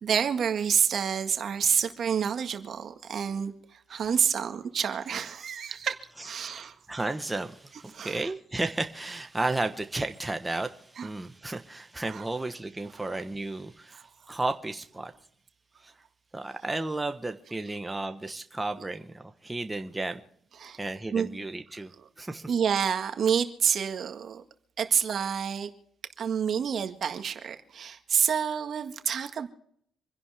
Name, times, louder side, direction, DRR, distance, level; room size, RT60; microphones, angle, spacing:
voice 1, 0.0-6.0 6.2-6.7 7.9-8.2 11.0-11.1 12.1-12.3 14.0-14.1 20.6-20.8 21.1-21.3 22.5-24.4 24.8-25.7 26.2-29.5, right 7 dB, 55° right, 1.7 m, -28 dB
voice 2, 6.2-15.1 15.8-15.9 16.3-20.2 20.8-21.9 22.2-22.5, right 2 dB, 15° right, 1.2 m, -33 dB
27.0 x 10.5 x 3.5 m
cardioid pair, 90°, 0 cm